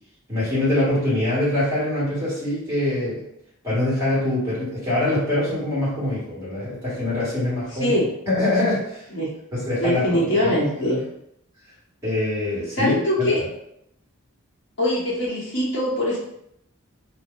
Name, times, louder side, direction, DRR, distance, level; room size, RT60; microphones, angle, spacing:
voice 1, 0.3-3.2 3.6-8.0 8.3-9.1 9.5-11.0 12.0-13.3, left 1 dB, 10° right, -8 dB, 1.5 m, -24 dB
voice 2, 7.7-8.1 9.1-9.3 9.7-11.0 12.7-13.4 14.8-16.2, left 1 dB, 55° left, -5 dB, 0.9 m, -22 dB
2.7 x 2.1 x 3.7 m, 0.75 s
head